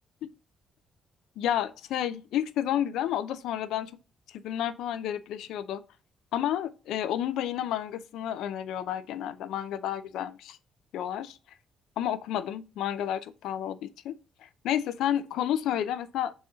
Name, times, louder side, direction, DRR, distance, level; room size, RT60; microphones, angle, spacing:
voice 1, 1.4-3.9 4.3-5.8 6.3-10.6 10.9-11.4 12.0-14.2 14.4-16.3, left 10 dB, 85° left, 0.6 m, -31 dB
6.3 x 4.1 x 3.6 m
cardioid pair, 90°, 0 cm